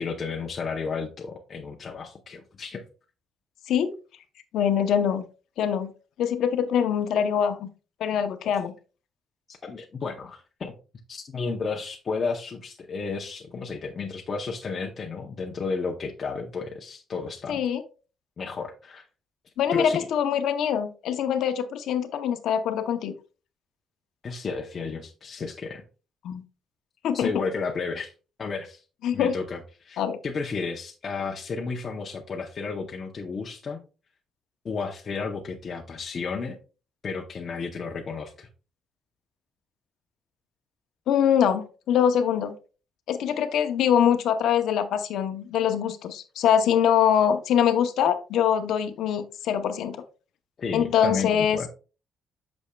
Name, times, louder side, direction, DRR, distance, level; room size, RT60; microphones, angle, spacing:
voice 1, 0.0-2.8 8.4-8.5 9.5-10.7 11.1-17.6 18.4-19.1 19.7-20.1 24.2-25.8 27.1-28.1 28.4-28.8 29.1-33.8 34.6-36.6 37.0-38.5 50.6-51.7, left 4 dB, 30° left, 1 dB, 0.7 m, -32 dB
voice 2, 4.5-5.2 5.6-5.9 6.2-7.7 8.0-8.7 17.5-17.8 19.6-23.1 26.2-26.4 27.0-27.3 29.0-29.3 30.0-30.2 41.1-42.5 43.1-50.0 50.7-51.7, left 8 dB, 70° left, 8 dB, 0.7 m, -23 dB
8.3 x 6.2 x 2.3 m, 0.34 s
cardioid pair, 165°, 0 cm